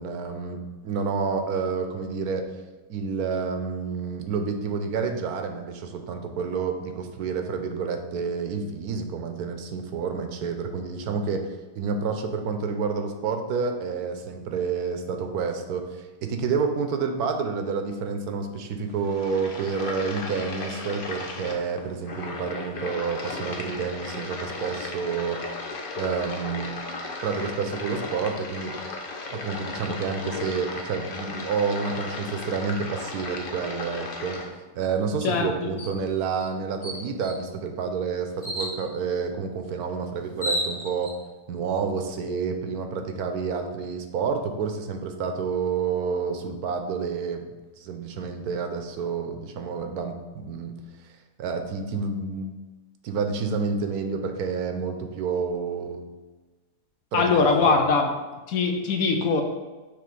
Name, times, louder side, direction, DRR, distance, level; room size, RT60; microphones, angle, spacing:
voice 1, 0.0-2.4 2.9-11.4 11.8-25.4 26.0-26.8 27.2-28.7 29.3-41.1 41.5-50.7 51.0-51.1 51.4-52.5 53.0-56.0 57.1-57.8, right 5 dB, 70° right, 6 dB, 1.1 m, -29 dB
sound 1, 18.9-34.5, left 3 dB, 45° left, 0.8 m, -35 dB
voice 2, 35.2-35.7 57.1-58.1 58.5-59.4, left 4 dB, 65° left, 4 dB, 1.0 m, -22 dB
sound 2, 35.8-36.0 36.4-36.5 36.8-37.4 38.4-38.8 39.9-40.0 40.3-41.1, equal, 20° left, 1.4 m, -31 dB
6.9 x 3.0 x 5.2 m, 1.2 s
omnidirectional pair, 1.7 m